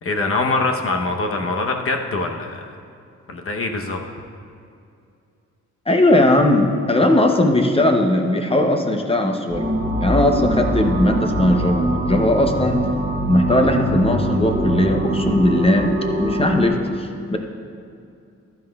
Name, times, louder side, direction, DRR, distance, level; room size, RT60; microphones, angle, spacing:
voice 1, 0.0-2.7 3.3-4.0, left 3 dB, 50° left, 3 dB, 0.9 m, -23 dB
voice 2, 5.9-9.7 10.0-12.9 13.3-17.4, left 1 dB, 20° left, 3 dB, 0.6 m, -18 dB
sound 1, 9.5-16.7, right 1 dB, 35° right, 1.4 m, -23 dB
14.5 x 11.5 x 2.3 m, 2.5 s
wide cardioid pair, 160°, 30 cm